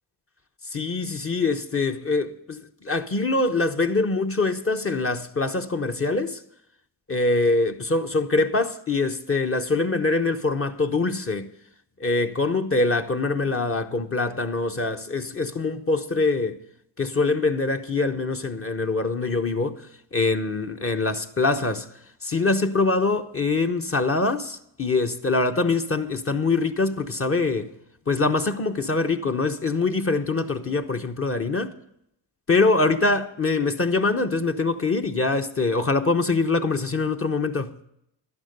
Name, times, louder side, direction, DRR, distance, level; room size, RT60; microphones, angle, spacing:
voice 1, 0.7-6.4 7.1-11.5 12.0-16.6 17.0-21.9 22.2-27.7 28.1-31.7 32.5-37.7, left 3 dB, 30° left, 0.9 m, -24 dB
12.0 x 10.5 x 6.6 m
cardioid pair, 75°, 44 cm